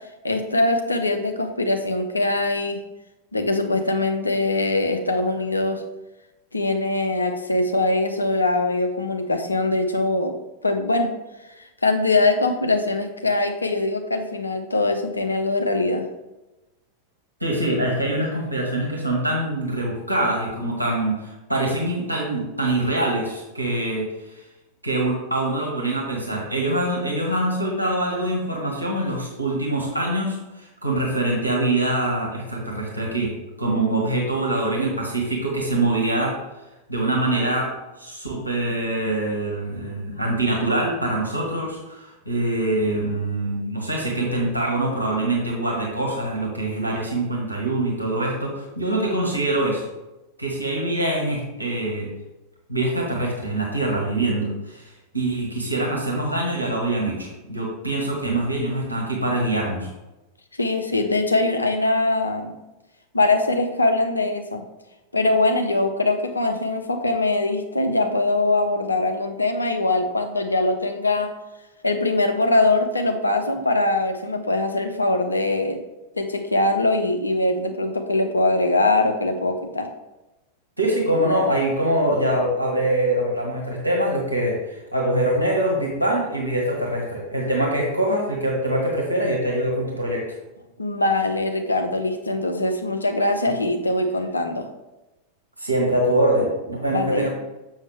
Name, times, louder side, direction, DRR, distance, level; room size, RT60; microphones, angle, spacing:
voice 1, 0.2-2.8 3.3-5.8 6.5-10.3 10.6-11.1 11.8-16.1 60.6-62.5 63.1-64.6 65.1-71.3 71.8-75.8 76.1-79.9 90.8-94.7 96.9-97.3, left 2 dB, 80° left, 6 dB, 0.8 m, -22 dB
voice 2, 17.4-24.0 24.8-36.4 36.9-49.9 50.4-52.1 52.7-59.9 80.8-90.3 95.6-97.3, right 1 dB, 85° right, -2 dB, 1.6 m, -24 dB
7.4 x 6.4 x 3.3 m, 1.0 s
figure-of-eight pair, 90°, 0 cm